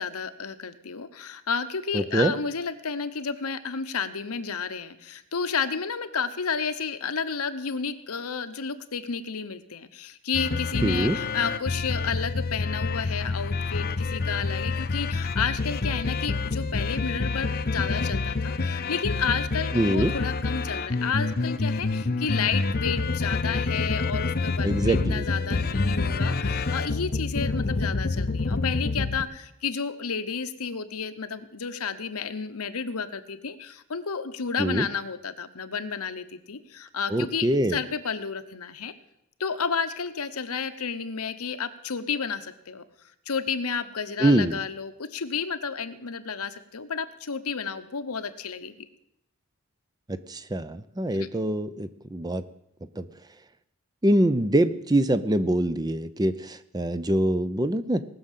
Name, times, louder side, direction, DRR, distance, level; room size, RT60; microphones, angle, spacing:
voice 1, 0.0-38.9 39.4-42.8 43.3-48.7 51.2-51.3, left 6 dB, 80° left, 10 dB, 0.9 m, -31 dB
voice 2, 1.9-2.3 10.8-11.2 19.7-20.1 24.6-25.3 34.6-34.9 37.1-37.8 44.2-44.6 50.1-52.4 53.0-53.1 54.0-58.1, right 1 dB, 15° right, 13 dB, 0.5 m, -24 dB
sound 1, 10.3-29.2, left 3 dB, 45° left, 0.6 m, -27 dB
sound 2, 23.7-27.1, right 2 dB, 80° right, 1.7 m, -50 dB
19.0 x 6.5 x 7.4 m, 0.81 s
head